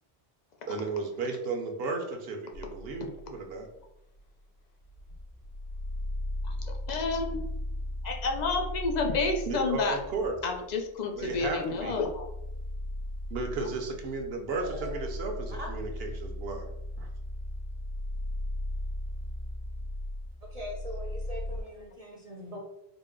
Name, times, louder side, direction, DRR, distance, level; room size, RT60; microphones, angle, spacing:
voice 1, 0.7-3.7 9.5-10.3 11.1-12.0 13.3-16.6 17.0-17.1, right 3 dB, 65° right, 3 dB, 0.9 m, -34 dB
sound 1, 2.5-3.6 4.2-4.3 4.8-21.6, left 1 dB, 85° left, 1.6 m, -37 dB
voice 2, 6.4-7.4 8.0-10.0 10.4-12.3 13.6-13.7, left 3 dB, 55° left, 3 dB, 0.5 m, -30 dB
voice 3, 14.5-15.1 15.5-15.7 20.5-22.6, equal, 45° right, -3 dB, 0.6 m, -41 dB
3.9 x 2.0 x 3.7 m, 0.85 s
omnidirectional pair, 1.1 m